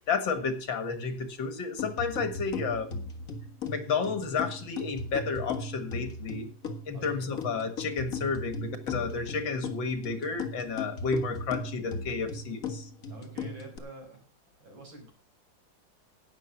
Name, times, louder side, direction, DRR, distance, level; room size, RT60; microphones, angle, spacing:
voice 1, 0.0-2.9 3.6-6.5 6.9-12.9, left 5 dB, 75° left, 10 dB, 2.4 m, -31 dB
sound 1, 1.8-13.8, left 3 dB, 45° left, 1.9 m, -37 dB
voice 2, 6.9-7.3 13.1-14.2 14.6-15.1, right 2 dB, 75° right, 1 dB, 5.5 m, -47 dB
11.5 x 9.2 x 5.9 m, 0.38 s
omnidirectional pair, 2.1 m